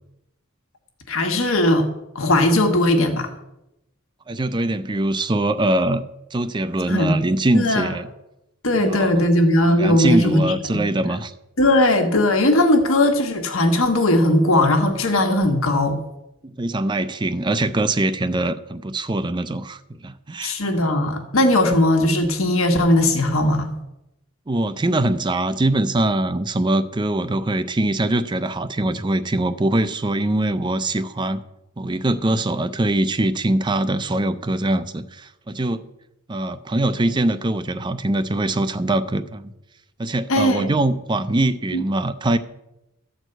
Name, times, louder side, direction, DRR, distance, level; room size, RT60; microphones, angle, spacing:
voice 1, 1.1-1.9 2.1-3.3 6.9-7.2 7.5-7.9 8.6-10.8 11.6-16.0 20.4-23.7 40.3-40.8 41.7-41.8, left 1 dB, 70° left, 1.4 m, -18 dB
voice 2, 4.3-6.0 6.3-8.1 8.8-9.1 9.6-11.3 16.4-20.5 24.5-31.4 31.8-35.9 36.3-39.5 40.0-42.4, right 1 dB, 20° right, 0.5 m, -22 dB
13.5 x 4.6 x 7.9 m
head